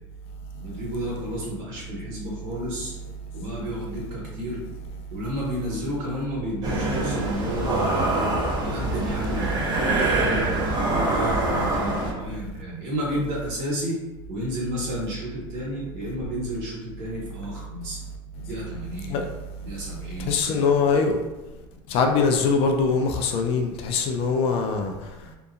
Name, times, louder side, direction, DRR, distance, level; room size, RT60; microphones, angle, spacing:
voice 1, 0.6-2.9 3.3-4.6 5.1-8.1 8.6-14.0 14.3-18.0 18.4-19.2 19.6-20.7, equal, 75° right, 1.3 m, -32 dB
sound 1, 6.6-12.1, right 2 dB, 35° right, 0.7 m, -24 dB
voice 2, 20.3-21.2 21.9-24.9, left 5 dB, 50° left, 0.4 m, -22 dB
2.8 x 2.2 x 2.4 m
supercardioid pair, 120°, 12 cm